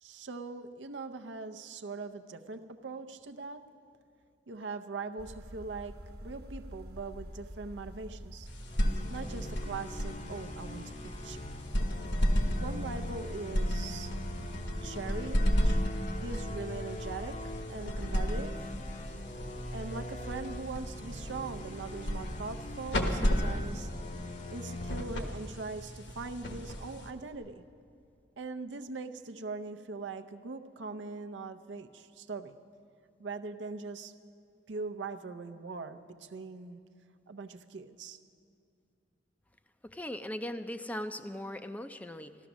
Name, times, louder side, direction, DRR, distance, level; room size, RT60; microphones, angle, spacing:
voice 1, 0.0-3.6 4.5-8.5 9.1-11.5 12.6-14.1 14.4-15.8 16.2-17.4 17.7-18.7 19.7-23.9 24.5-27.6 28.4-32.5 33.2-34.1 34.7-36.8 37.3-38.2, right 3 dB, 85° right, 8 dB, 0.6 m, -41 dB
sound 1, 5.2-23.7, equal, 60° right, 1.1 m, -46 dB
sound 2, 8.5-27.3, equal, 75° left, 1.3 m, -34 dB
Cinematic Music - Judgements, 8.6-25.0, left 1 dB, 40° left, 0.7 m, -43 dB
voice 2, 39.8-42.4, left 1 dB, 10° left, 9 dB, 0.4 m, -39 dB
14.0 x 12.5 x 6.1 m, 2.5 s
head